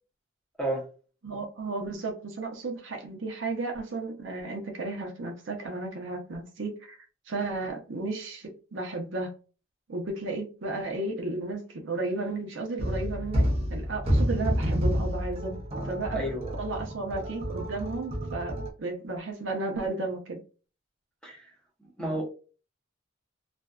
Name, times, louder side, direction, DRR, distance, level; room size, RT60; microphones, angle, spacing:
voice 1, 1.2-7.0 7.3-9.3 9.9-15.6 15.8-16.3 16.6-20.4 22.0-22.2, right 2 dB, 70° right, 0.7 m, -33 dB
sound 1, 12.8-18.7, equal, 30° right, 0.6 m, -29 dB
voice 2, 16.1-16.5 21.2-21.5 21.8-22.2, right 1 dB, 5° left, 0.7 m, -31 dB
2.5 x 2.3 x 2.2 m
head